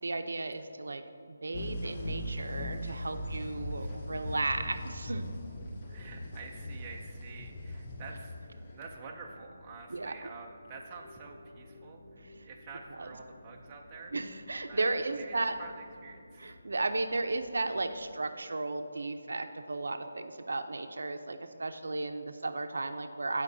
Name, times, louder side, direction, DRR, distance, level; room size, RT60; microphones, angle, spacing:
voice 1, 0.0-1.0 1.3-5.3 9.9-10.1 12.2-12.5 13.0-13.1 14.1-15.5 16.4-23.4, right 3 dB, 80° right, 8 dB, 0.6 m, -34 dB
sound 1, 1.5-8.9, left 1 dB, 25° left, 0.7 m, -39 dB
sound 2, 2.0-18.2, left 1 dB, 85° left, 1.6 m, -56 dB
voice 2, 5.9-14.1 14.7-16.6 21.4-22.0, right 4 dB, 15° right, 0 dB, 0.5 m, -48 dB
14.5 x 5.2 x 2.7 m, 2.5 s
hypercardioid pair, 175°, 0 cm